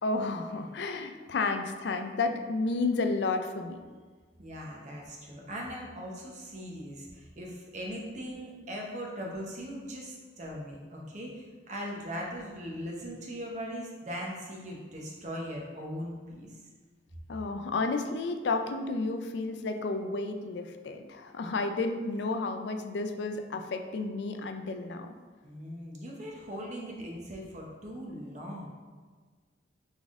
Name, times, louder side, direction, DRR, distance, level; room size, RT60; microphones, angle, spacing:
voice 1, 0.0-3.8 17.3-25.1, left 3 dB, 65° left, 6 dB, 0.4 m, -31 dB
voice 2, 4.4-16.6 25.4-28.7, equal, 40° right, -2 dB, 0.8 m, -40 dB
4.1 x 3.6 x 3.6 m, 1.5 s
head